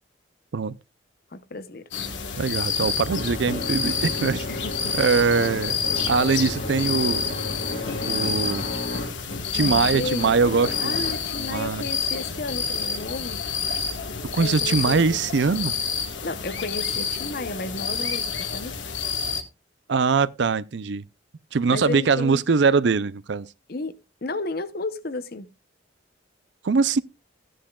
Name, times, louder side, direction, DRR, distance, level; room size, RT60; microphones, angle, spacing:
voice 1, 1.3-1.9 4.5-4.9 9.5-10.3 10.8-13.4 14.3-15.2 16.2-18.8 21.7-22.4 23.7-25.5, left 2 dB, 55° left, 0.8 m, -33 dB
sound 1, 1.9-19.4, left 6 dB, 75° left, 1.4 m, -29 dB
sound 2, 2.1-9.3 10.2-11.3, left 1 dB, 35° left, 6.5 m, -34 dB
voice 2, 2.4-4.5 5.0-5.8 6.1-7.3 8.0-8.7 9.5-10.9 11.4-11.8 14.3-15.7 19.9-21.0 21.5-23.5 26.6-27.0, right 5 dB, 65° right, 0.5 m, -22 dB
15.0 x 10.0 x 2.3 m
head